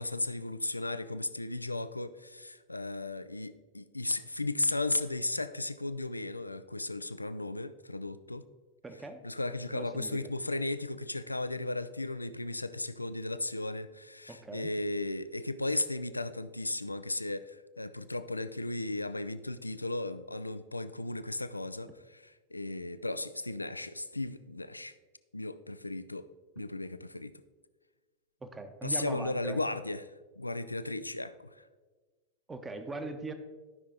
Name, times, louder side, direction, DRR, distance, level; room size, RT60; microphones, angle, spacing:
voice 1, 0.0-8.4 9.2-24.9 25.3-26.3 26.6-27.3 28.8-30.0 30.4-31.6, left 2 dB, 85° left, 13 dB, 0.4 m, -35 dB
voice 2, 8.8-9.2 9.7-10.3 14.3-14.7 28.4-29.6 32.5-33.3, right 3 dB, 15° right, 7 dB, 0.9 m, -41 dB
12.5 x 5.8 x 3.8 m, 1.3 s
figure-of-eight pair, 90°, 0 cm